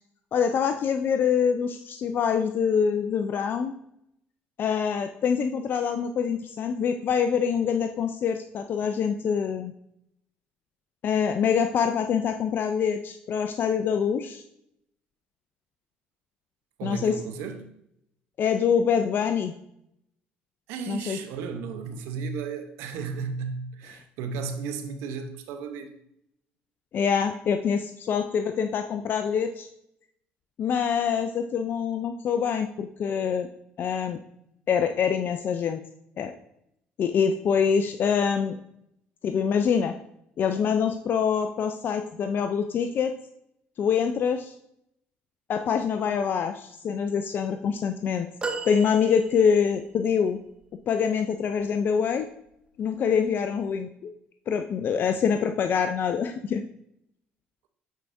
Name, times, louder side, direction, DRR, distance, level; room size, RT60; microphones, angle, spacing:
voice 1, 0.3-3.7 4.6-9.7 11.0-14.4 16.8-17.2 18.4-19.5 20.9-21.2 26.9-29.7 30.6-33.5 33.8-34.2 34.7-35.8 36.2-36.3 37.0-38.6 39.2-40.0 40.4-43.1 43.8-44.5 45.5-48.3 48.7-50.4 50.9-52.3 52.8-54.1 54.5-56.6, left 7 dB, 55° left, 8 dB, 0.4 m, -25 dB
voice 2, 16.8-17.6 20.7-25.9, right 5 dB, 85° right, 7 dB, 0.8 m, -34 dB
sound 1, 48.4-49.8 50.6-50.7, right 4 dB, 25° right, 0.8 m, -35 dB
9.1 x 4.7 x 2.6 m, 0.77 s
supercardioid pair, 80°, 4 cm